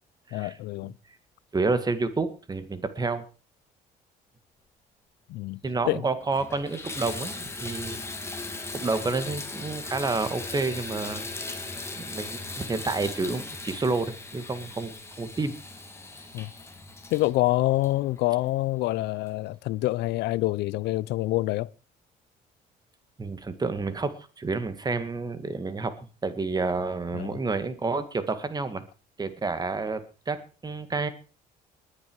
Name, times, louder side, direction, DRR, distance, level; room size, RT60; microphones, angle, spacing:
voice 1, 0.3-0.9 5.3-5.6 5.9-6.0 16.3-16.5 17.1-21.7 27.1-27.4, left 18 dB, 80° left, 0.6 m, -26 dB
voice 2, 1.5-3.2 5.6-8.0 8.7-11.3 11.9-15.6 23.2-28.8 29.2-31.1, right 3 dB, 25° right, 2.0 m, -29 dB
Water tap faucet / Bathtub (filling or washing), 5.6-5.7 6.2-18.6 19.3-19.4 19.9-20.0, left 3 dB, 15° left, 2.9 m, -38 dB
20.0 x 9.8 x 4.7 m
cardioid pair, 110°, 17 cm